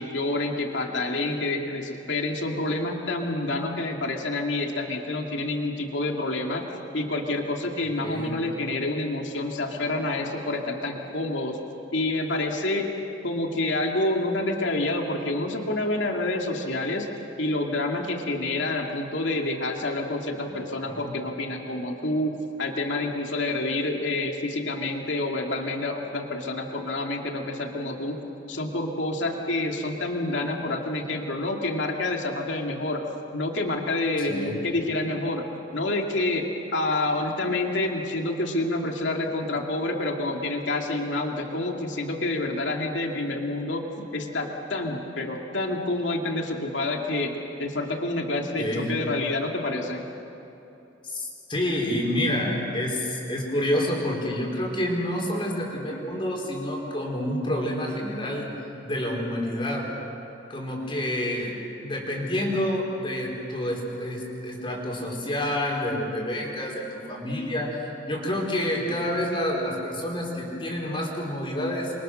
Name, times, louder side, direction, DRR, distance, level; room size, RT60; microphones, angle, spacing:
voice 1, 0.0-6.7 6.9-11.6 11.9-12.9 13.2-17.1 17.4-28.2 28.5-33.0 33.3-35.4 35.7-36.5 36.7-50.0, left 2 dB, 75° left, 1 dB, 2.5 m, -28 dB
voice 2, 8.0-8.4 20.4-20.5 20.8-21.1 34.2-34.6 48.6-48.9 51.0-58.5 58.8-59.9 60.5-61.5 61.8-71.9, left 1 dB, 25° left, -1 dB, 4.5 m, -28 dB
29.0 x 24.0 x 6.4 m, 2.9 s
head